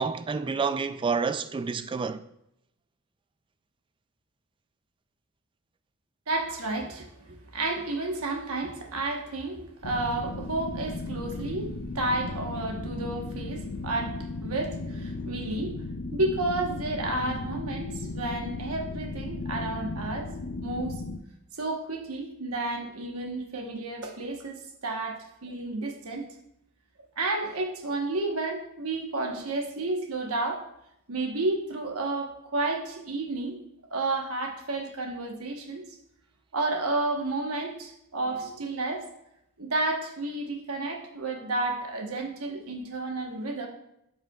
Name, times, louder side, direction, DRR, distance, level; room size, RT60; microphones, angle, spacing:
voice 1, 0.0-2.2, right 5 dB, 20° right, 0.3 m, -29 dB
voice 2, 6.3-11.7 11.9-15.7 16.1-20.3 20.6-21.0 21.5-26.3 27.2-30.6 31.1-33.6 33.9-35.9 36.5-39.1 39.6-43.7, right 2 dB, 70° right, 1.2 m, -31 dB
sound 1, 9.8-21.2, left 3 dB, 70° left, 0.6 m, -36 dB
12.5 x 5.7 x 2.4 m
head